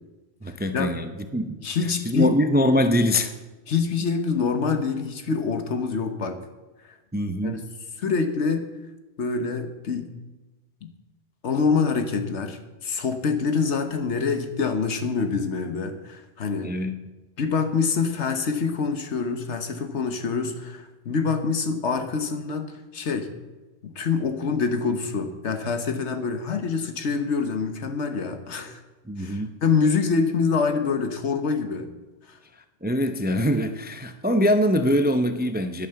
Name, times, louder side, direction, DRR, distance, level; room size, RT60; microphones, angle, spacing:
voice 1, 0.4-1.6 2.0-3.3 7.1-7.6 16.6-16.9 29.1-29.5 32.8-35.9, equal, 15° right, 8 dB, 0.4 m, -23 dB
voice 2, 1.6-2.4 3.7-6.4 7.4-7.6 8.0-8.7 9.2-10.1 10.8-10.9 11.4-16.7 17.4-23.3 23.8-28.8 29.2-31.9 32.3-32.4, left 5 dB, 80° left, 7 dB, 1.4 m, -26 dB
10.5 x 9.2 x 6.9 m, 1.2 s
omnidirectional pair, 1.2 m